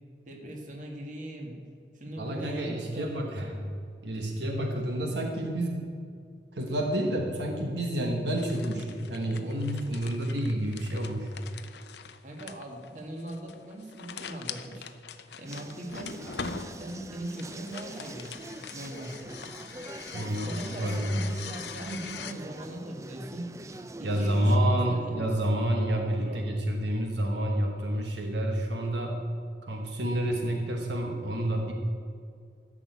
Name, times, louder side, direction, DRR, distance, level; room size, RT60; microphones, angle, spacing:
voice 1, 0.3-1.6 1.9-3.7 12.2-14.9 15.4-18.4 18.7-19.2 20.4-23.6 24.0-25.3 26.2-26.5, right 1 dB, 45° right, 1 dB, 1.9 m, -40 dB
voice 2, 2.2-3.5 4.0-5.9 6.5-11.3 20.1-21.1 24.0-29.2 29.6-31.7, right 1 dB, 80° right, 2 dB, 1.2 m, -29 dB
sound 1, 8.4-22.3, left 6 dB, 70° left, 0.7 m, -43 dB
sound 2, 15.4-24.6, right 2 dB, 15° right, 0.4 m, -44 dB
13.0 x 6.2 x 8.2 m, 2.2 s
head